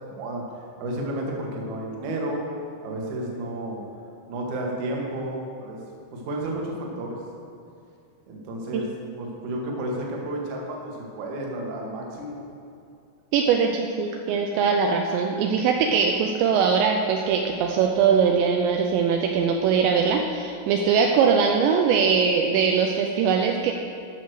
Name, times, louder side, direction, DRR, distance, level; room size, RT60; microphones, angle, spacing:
voice 1, 0.1-0.4 0.8-2.5 2.8-3.8 4.3-5.8 6.1-7.1 8.3-8.9 9.2-12.4, right 1 dB, 60° right, -1 dB, 2.1 m, -31 dB
voice 2, 13.3-23.7, right 6 dB, 80° right, 2 dB, 2.7 m, -21 dB
12.5 x 6.3 x 6.4 m, 2.5 s
omnidirectional pair, 5.5 m